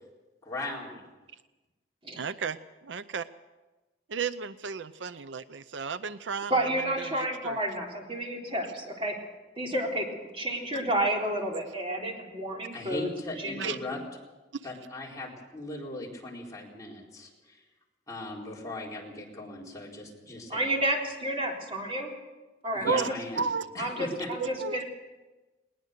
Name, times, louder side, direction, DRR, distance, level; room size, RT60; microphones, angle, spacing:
voice 1, 0.4-1.0 12.7-14.0 14.6-17.6 18.1-20.8 22.7-23.5 23.7-24.3, left 2 dB, 20° left, -3 dB, 4.3 m, -38 dB
voice 2, 2.2-2.6 2.8-3.3 4.1-6.7 7.0-7.6 10.7-10.8 11.5-11.6 13.6-13.8 22.8-23.1 23.4-23.7 24.4-24.8, right 6 dB, 75° right, 14 dB, 0.6 m, -33 dB
voice 3, 6.5-9.2 9.6-10.1 10.3-13.1 13.4-13.7 20.5-22.1 22.6-23.0 23.8-24.8, right 1 dB, 30° right, 0 dB, 3.7 m, -30 dB
20.5 x 19.5 x 6.6 m, 1.2 s
head